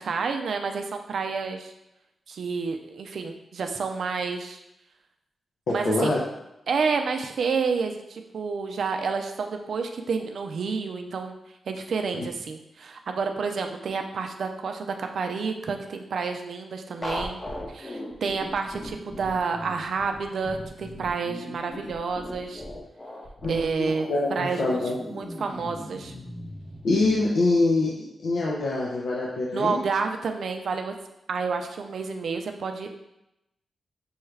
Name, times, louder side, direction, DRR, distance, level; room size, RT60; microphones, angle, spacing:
voice 1, 0.0-1.7 2.3-4.6 5.7-6.1 6.7-11.4 11.7-17.4 17.7-22.6 23.5-24.8 25.1-26.1 29.5-30.9 31.3-32.9, right 5 dB, 75° right, 5 dB, 0.4 m, -29 dB
voice 2, 5.7-6.2 12.2-12.3 23.4-25.0 26.8-29.8, left 2 dB, 85° left, -4 dB, 0.7 m, -25 dB
sound 1, 17.0-27.2, left 1 dB, 25° left, 0.8 m, -38 dB
6.2 x 2.3 x 3.2 m, 0.87 s
cardioid pair, 75°, 0 cm